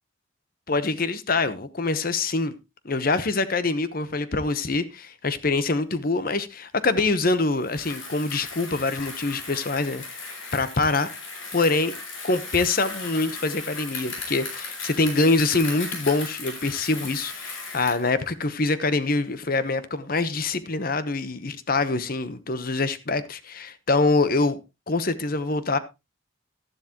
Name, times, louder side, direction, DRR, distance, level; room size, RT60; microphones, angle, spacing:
voice 1, 0.7-2.5 2.8-10.0 10.5-11.1 11.5-11.9 12.2-24.6 24.9-25.8, left 3 dB, 45° left, 0.9 m, -25 dB
Bicycle, 7.6-18.1, left 3 dB, 80° left, 7.2 m, -36 dB
12.5 x 11.0 x 2.9 m
head